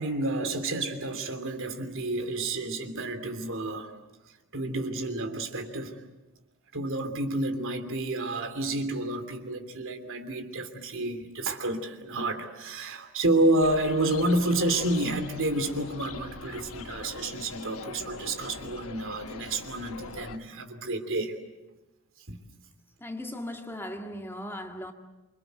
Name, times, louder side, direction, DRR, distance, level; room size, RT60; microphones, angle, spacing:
voice 1, 0.0-3.9 4.5-6.0 6.7-21.4 22.3-22.4, right 1 dB, 60° right, 3.0 m, -29 dB
sound 1, 13.6-20.4, left 4 dB, 65° left, 1.3 m, -42 dB
voice 2, 23.0-24.9, left 1 dB, 10° left, 1.9 m, -37 dB
28.0 x 25.0 x 8.1 m
head